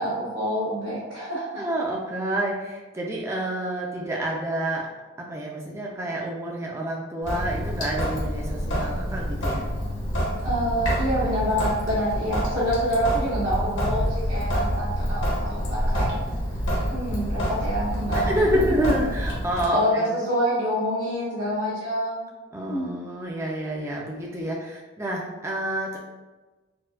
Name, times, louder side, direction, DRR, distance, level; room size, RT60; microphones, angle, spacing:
voice 1, 0.0-1.7 10.4-16.1 16.9-18.8 19.7-22.3 22.7-22.9, equal, 90° right, -12 dB, 1.3 m, -27 dB
voice 2, 1.6-4.9 5.2-9.6 18.1-20.1 22.5-26.0, right 1 dB, 15° right, -2 dB, 0.3 m, -28 dB
Sink (filling or washing) / Drip, 7.2-19.7, equal, 70° left, 1.0 m, -27 dB
4.4 x 2.1 x 2.4 m, 1.2 s
head